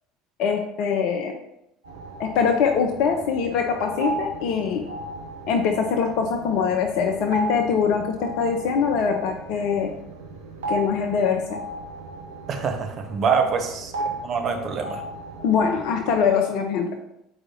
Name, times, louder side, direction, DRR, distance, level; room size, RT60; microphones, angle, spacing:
voice 1, 0.4-1.3 2.2-4.9 5.5-9.9 10.7-11.6 15.4-16.9, left 6 dB, 55° left, 4 dB, 0.6 m, -23 dB
sound 1, 1.8-16.3, right 3 dB, 75° right, 1.1 m, -36 dB
voice 2, 12.5-13.9 14.2-15.0, right 6 dB, 40° right, 4 dB, 1.1 m, -25 dB
7.6 x 4.9 x 2.9 m, 0.81 s
figure-of-eight pair, 65°, 0 cm